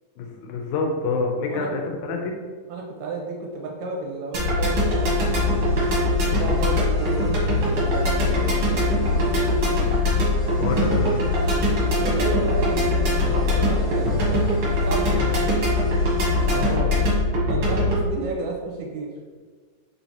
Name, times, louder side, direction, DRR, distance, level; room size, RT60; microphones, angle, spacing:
voice 1, 0.2-2.4 10.6-11.2 15.2-15.7 16.5-17.1, left 3 dB, 80° left, 2 dB, 2.0 m, -27 dB
voice 2, 2.7-5.8 6.3-9.0 12.0-14.5 14.7-15.5 16.7-16.8 17.5-19.1, right 3 dB, 80° right, 0 dB, 1.9 m, -32 dB
sound 1, 4.3-18.1, left 2 dB, 55° right, 1.4 m, -22 dB
sound 2, 4.6-16.8, right 1 dB, 40° right, 1.4 m, -36 dB
4.4 x 4.1 x 2.8 m, 1.6 s
omnidirectional pair, 3.5 m